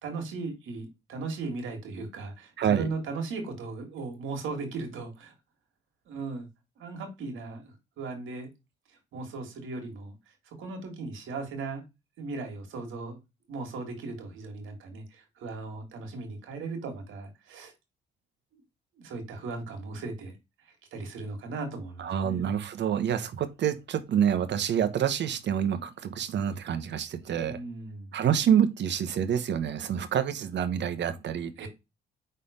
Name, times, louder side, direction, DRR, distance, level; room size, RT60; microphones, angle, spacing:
voice 1, 0.0-5.3 6.1-6.5 6.8-8.5 9.1-11.8 12.2-13.2 13.5-17.7 18.5-18.6 19.0-22.5 27.4-28.1 31.6-31.7, right 3 dB, 80° right, 2.3 m, -37 dB
voice 2, 22.0-27.6 28.1-31.7, right 9 dB, 65° right, 1.1 m, -27 dB
5.5 x 4.1 x 5.1 m
cardioid pair, 90°, 20 cm